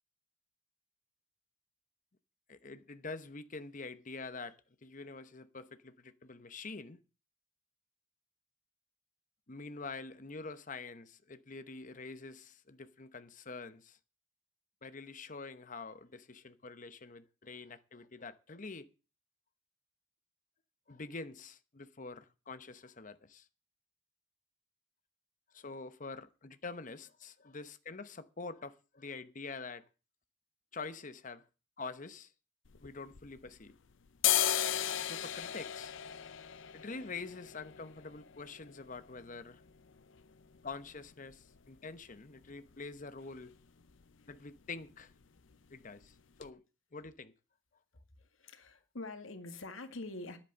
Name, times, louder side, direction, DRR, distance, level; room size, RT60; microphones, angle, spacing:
voice 1, 2.5-7.0 9.5-14.0 14.8-18.9 20.9-23.5 25.5-29.9 30.7-31.4 31.8-32.3 32.8-33.7 35.0-35.9 36.7-39.6 40.6-43.5 44.3-45.1 45.7-46.6 46.9-47.3, left 4 dB, 40° left, 0.9 m, -46 dB
sound 1, 32.7-33.7 34.1-41.8 42.1-42.2 42.4-43.0 43.3-43.5 43.8-44.0 44.3-45.0 45.4-45.5 46.0-46.1 46.4-46.5, left 11 dB, 70° left, 0.7 m, -36 dB
voice 2, 48.2-50.4, left 2 dB, 85° left, 2.0 m, -45 dB
10.5 x 8.8 x 6.8 m
head